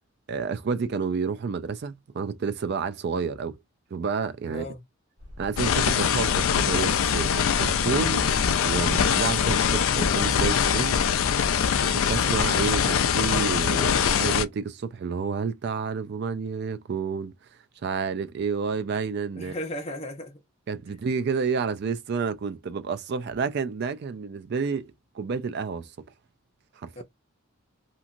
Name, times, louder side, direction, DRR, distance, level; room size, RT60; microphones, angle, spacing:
voice 1, 0.3-3.6 3.9-4.7 5.4-11.0 11.8-17.3 17.8-19.5 20.7-25.9 26.8-27.0, right 5 dB, 50° right, 0.3 m, -30 dB
voice 2, 4.5-4.8 19.4-20.4 20.9-21.0 27.0-27.1, left 1 dB, 30° left, 0.8 m, -35 dB
sound 1, 5.2-11.6, left 1 dB, 85° right, 1.3 m, -40 dB
sound 2, 5.6-14.4, left 7 dB, 70° left, 0.4 m, -23 dB
3.0 x 2.4 x 2.5 m
head